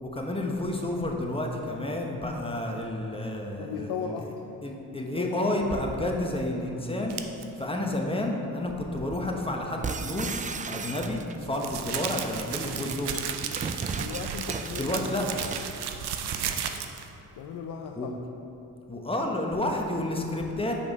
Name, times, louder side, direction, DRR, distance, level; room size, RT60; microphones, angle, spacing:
voice 1, 0.0-4.3 4.6-7.2 7.6-13.2 14.8-15.5 17.9-18.1 18.9-20.7, left 1 dB, 10° left, 1 dB, 1.1 m, -30 dB
voice 2, 3.6-4.3 5.2-5.5 14.0-15.0 17.3-18.2, left 7 dB, 60° left, 2 dB, 0.6 m, -36 dB
sound 1, 7.1-7.4 10.5-17.1, right 8 dB, 65° right, 0.6 m, -34 dB
sound 2, 9.8-11.5 12.5-15.8, right 5 dB, 20° right, 0.3 m, -35 dB
7.0 x 4.9 x 4.1 m, 2.9 s
hypercardioid pair, 45°, 44 cm